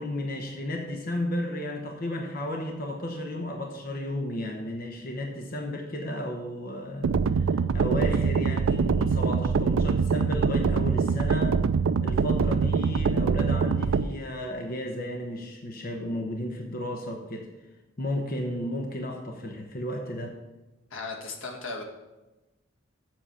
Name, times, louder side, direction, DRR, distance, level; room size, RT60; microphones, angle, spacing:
voice 1, 0.0-11.6 12.0-17.5 18.0-20.3, left 1 dB, 50° left, 2 dB, 1.0 m, -33 dB
sound 1, 7.0-14.0, right 5 dB, 85° right, 0.4 m, -24 dB
voice 2, 20.9-21.8, left 3 dB, 85° left, 1 dB, 1.6 m, -36 dB
7.5 x 6.9 x 5.7 m, 1.1 s
head